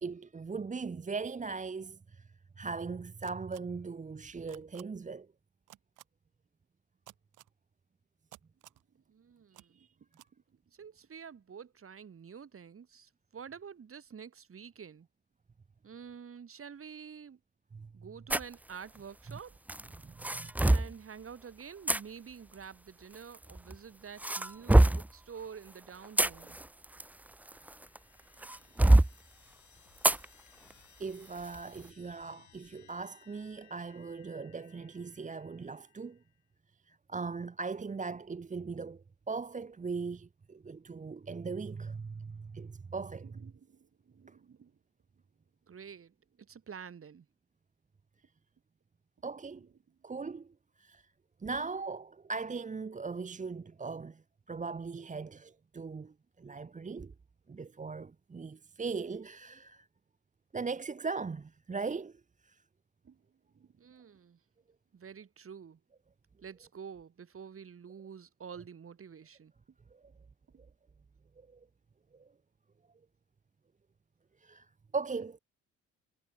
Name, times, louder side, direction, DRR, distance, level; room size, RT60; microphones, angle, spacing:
voice 1, 0.0-2.3 2.6-5.3 9.6-9.9 17.7-17.9 20.0-20.5 31.0-36.2 36.9-43.5 44.3-44.4 49.2-49.7 50.0-51.1 51.4-54.2 54.5-57.1 57.5-59.9 60.5-62.6 69.9-70.0 71.5-71.6 72.1-72.3 74.4-74.7 74.9-75.4, right 4 dB, 25° right, 1.1 m, -39 dB
sound 1, 3.2-3.6 4.5-4.8 5.7-6.0 7.1-7.5 8.3-8.8 9.5-9.6 10.1-10.3, right 15 dB, 85° right, 3.7 m, -54 dB
voice 2, 9.1-9.9 10.8-15.1 15.8-17.4 17.9-19.6 20.6-26.6 43.2-44.7 45.7-46.1 46.5-47.3 49.5-49.7 63.0-63.2 63.5-64.4 64.9-65.8 66.4-69.5, right 7 dB, 45° right, 7.8 m, -48 dB
sound 2, 18.3-18.5 19.7-20.9 21.9-22.0 23.1-23.8 24.2-25.1 25.9-28.0 28.4-29.1 30.0-30.2 30.7-30.8 31.4-31.6, right 1 dB, 5° right, 0.5 m, -24 dB
sound 3, 27.2-36.5, left 11 dB, 75° left, 6.8 m, -64 dB
cardioid pair, 90°, 30 cm